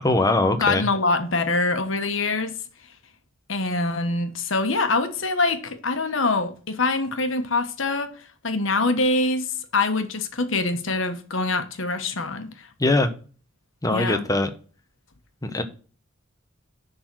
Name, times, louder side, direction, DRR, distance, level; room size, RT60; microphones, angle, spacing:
voice 1, 0.0-0.9 12.8-13.1 13.8-14.5 15.4-15.6, left 2 dB, 20° left, 1.0 m, -21 dB
voice 2, 0.6-2.6 3.5-8.1 8.4-9.5 9.7-12.7 13.9-14.2, left 3 dB, 70° left, 1.2 m, -24 dB
10.5 x 4.0 x 6.2 m
head